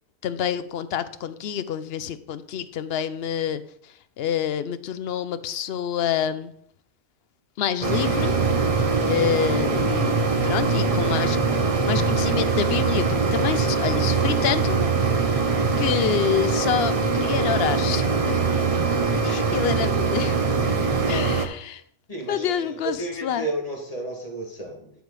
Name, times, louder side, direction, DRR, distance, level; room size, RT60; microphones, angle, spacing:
voice 1, 0.2-6.5 7.6-8.3 9.0-11.4 11.8-14.8 15.3-15.5 15.8-18.4 19.2-20.4 21.1-21.8 22.3-23.5, left 9 dB, 60° left, 13 dB, 0.7 m, -27 dB
sound 1, 7.8-21.5, right 4 dB, 35° right, 0.6 m, -22 dB
voice 2, 22.1-24.9, right 2 dB, 30° left, 0 dB, 1.9 m, -32 dB
10.0 x 4.8 x 4.7 m, 0.67 s
omnidirectional pair, 1.4 m